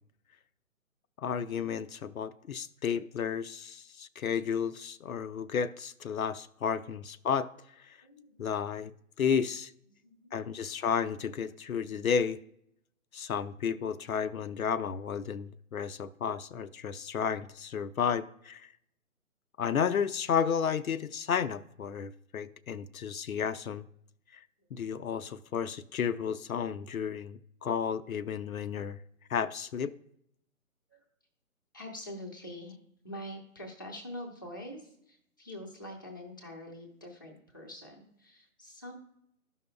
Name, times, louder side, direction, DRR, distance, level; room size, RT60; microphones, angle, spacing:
voice 1, 1.2-7.5 7.9-8.0 8.4-8.9 9.2-9.7 10.3-12.4 13.1-18.7 19.6-23.9 24.7-29.0 29.3-29.9, left 7 dB, 75° left, 0.5 m, -32 dB
voice 2, 8.0-8.5 10.0-10.5 30.9-31.0 31.7-32.8 33.0-38.9, left 1 dB, 15° left, 0.5 m, -45 dB
12.5 x 5.5 x 2.3 m
figure-of-eight pair, 140°, 42 cm